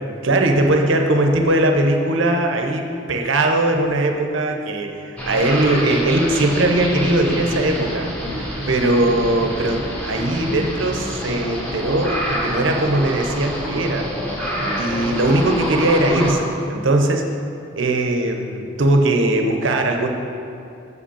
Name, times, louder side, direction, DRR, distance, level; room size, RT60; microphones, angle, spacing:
voice 1, 0.2-14.1 14.8-17.2 17.8-20.1, right 1 dB, 70° right, 3 dB, 0.8 m, -20 dB
sound 1, 5.2-16.3, equal, 5° left, 1.1 m, -27 dB
6.6 x 5.2 x 6.9 m, 2.7 s
head